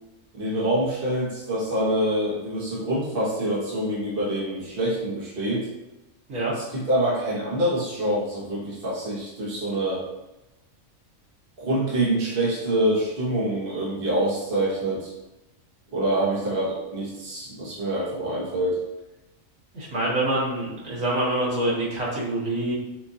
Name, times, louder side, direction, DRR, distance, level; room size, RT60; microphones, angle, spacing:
voice 1, 0.3-5.7 6.5-10.0 11.6-15.1 15.9-18.8, right 1 dB, 45° right, -6 dB, 1.3 m, -26 dB
voice 2, 19.7-22.7, right 1 dB, 75° right, -7 dB, 1.8 m, -26 dB
5.9 x 2.6 x 2.7 m, 1.0 s
omnidirectional pair, 1.4 m